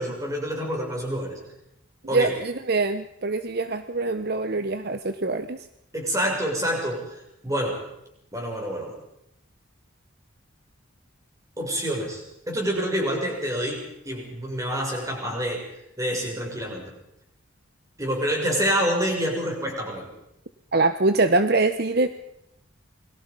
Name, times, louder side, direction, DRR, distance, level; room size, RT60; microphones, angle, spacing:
voice 1, 0.0-1.4 2.1-2.3 5.9-7.0 7.4-7.8 8.3-9.0 11.6-15.6 16.0-16.9 18.0-20.1, equal, 15° right, 0 dB, 6.6 m, -27 dB
voice 2, 2.1-5.6 20.7-22.1, right 3 dB, 50° right, 10 dB, 1.0 m, -23 dB
28.5 x 22.5 x 5.4 m, 0.82 s
head